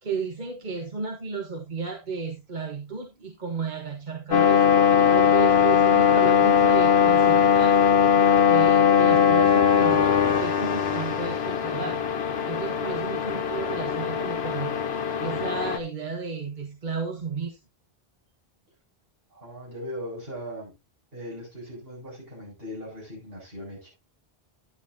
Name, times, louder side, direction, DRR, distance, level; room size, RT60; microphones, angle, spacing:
voice 1, 0.0-4.6 5.1-7.8 8.4-12.0 12.5-14.8 15.2-17.6, right 5 dB, 50° right, 1.3 m, -33 dB
sound 1, 4.3-15.8, left 7 dB, 75° left, 1.2 m, -20 dB
voice 2, 19.3-20.7 21.1-23.9, equal, 65° right, 7.5 m, -39 dB
11.0 x 9.7 x 2.7 m
omnidirectional pair, 1.0 m